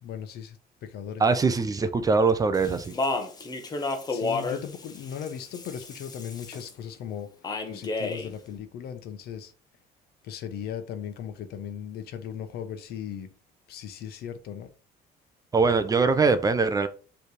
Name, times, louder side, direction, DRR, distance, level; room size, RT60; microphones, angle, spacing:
voice 1, 0.0-1.2 4.1-7.3 7.7-9.5 10.2-13.3 13.7-14.7, left 8 dB, 65° left, 1.1 m, -37 dB
voice 2, 1.2-2.9 15.5-16.9, right 4 dB, 20° right, 0.6 m, -22 dB
Speech, 2.5-6.7 7.4-8.3, left 3 dB, 25° left, 1.2 m, -32 dB
6.8 x 3.4 x 4.9 m
cardioid pair, 140°, 17 cm